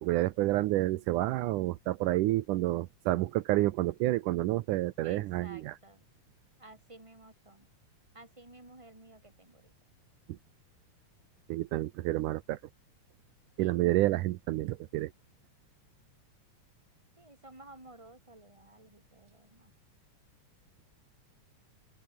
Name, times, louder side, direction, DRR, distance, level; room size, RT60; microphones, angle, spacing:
voice 1, 0.0-5.8 10.3-10.4 11.5-12.6 13.6-15.1, right 17 dB, 80° right, 2.2 m, -29 dB
voice 2, 5.0-6.0 6.6-7.7 8.1-9.7 13.6-13.7 17.2-19.7, right 2 dB, 10° right, 4.2 m, -54 dB
open air
omnidirectional pair, 3.7 m